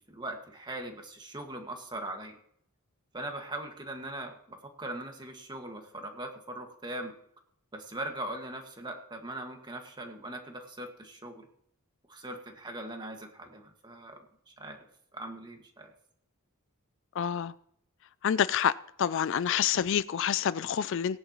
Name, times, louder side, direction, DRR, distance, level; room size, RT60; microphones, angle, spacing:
voice 1, 0.0-2.4 3.1-7.1 7.7-11.5 12.1-14.2 14.5-14.8 15.1-15.9, right 1 dB, 20° right, 1.8 m, -40 dB
voice 2, 17.2-17.5 18.2-18.7 19.0-21.2, left 8 dB, 60° left, 0.4 m, -27 dB
18.5 x 10.5 x 3.0 m
head